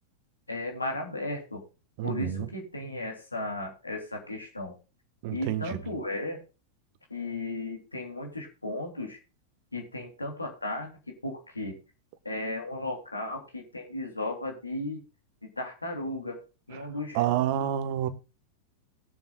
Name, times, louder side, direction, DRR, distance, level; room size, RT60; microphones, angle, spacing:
voice 1, 0.5-1.6 2.0-4.7 5.3-6.4 7.1-9.2 9.7-10.9 11.2-11.7 12.2-15.0 15.6-16.4 16.7-17.2, left 2 dB, 80° left, 3.1 m, -35 dB
voice 2, 2.0-2.5 5.2-5.8 17.1-18.1, right 11 dB, 50° right, 1.4 m, -28 dB
21.5 x 7.2 x 2.4 m
figure-of-eight pair, 90°, 0 cm